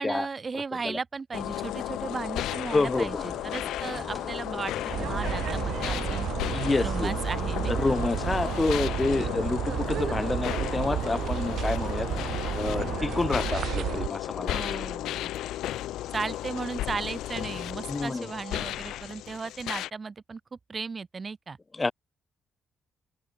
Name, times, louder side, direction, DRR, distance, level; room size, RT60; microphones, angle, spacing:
voice 1, 0.0-6.3 6.8-8.0 14.5-15.3 16.1-20.4 20.7-21.6, right 4 dB, 35° right, 2.1 m, -36 dB
voice 2, 0.5-1.0 2.7-3.2 6.5-7.1 7.7-12.1 12.5-14.6 17.9-18.3 21.7-21.9, left 3 dB, 20° left, 0.8 m, -28 dB
sound 1, 1.3-19.9, left 14 dB, 85° left, 1.3 m, -34 dB
sound 2, 3.0-13.0, equal, ahead, 4.2 m, -45 dB
sound 3, 4.9-14.1, right 10 dB, 70° right, 0.4 m, -31 dB
open air
cardioid pair, 90°, 0 cm